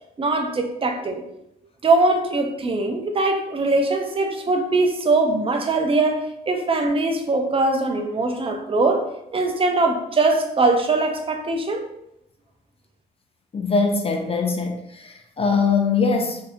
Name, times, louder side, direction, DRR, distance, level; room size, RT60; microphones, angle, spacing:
voice 1, 0.2-1.2 1.8-9.0 9.3-11.9, right 3 dB, 30° right, 3 dB, 0.7 m, -21 dB
voice 2, 13.5-16.4, left 4 dB, 30° left, 4 dB, 0.5 m, -22 dB
3.8 x 2.8 x 2.7 m, 0.82 s
supercardioid pair, 65°, 18 cm